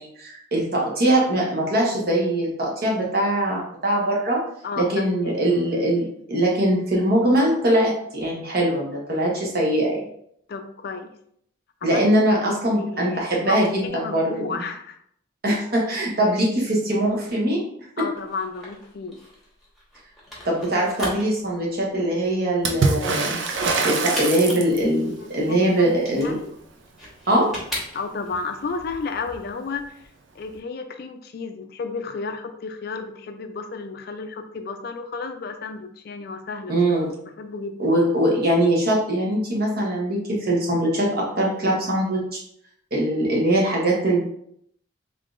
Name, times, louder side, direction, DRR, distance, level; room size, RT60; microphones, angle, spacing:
voice 1, 0.0-4.4 4.8-10.0 11.8-14.6 15.4-17.6 18.0-18.1 20.4-23.6 23.8-26.4 27.3-27.5 36.7-37.1 37.8-42.4 42.9-44.2, right 1 dB, 50° right, -2 dB, 1.0 m, -22 dB
voice 2, 4.6-5.3 10.5-11.1 11.8-12.4 12.8-15.0 18.0-19.2 25.2-25.6 26.1-26.5 27.9-30.0 30.4-36.7 37.4-37.9, left 4 dB, 50° left, 7 dB, 0.3 m, -32 dB
sound 1, 18.2-28.4, equal, ahead, 1.2 m, -37 dB
Water / Splash splatter, 22.6-25.0 28.3-28.4 28.7-29.4 30.5-30.6, right 3 dB, 70° right, 0.5 m, -24 dB
3.6 x 3.6 x 2.5 m, 0.70 s
head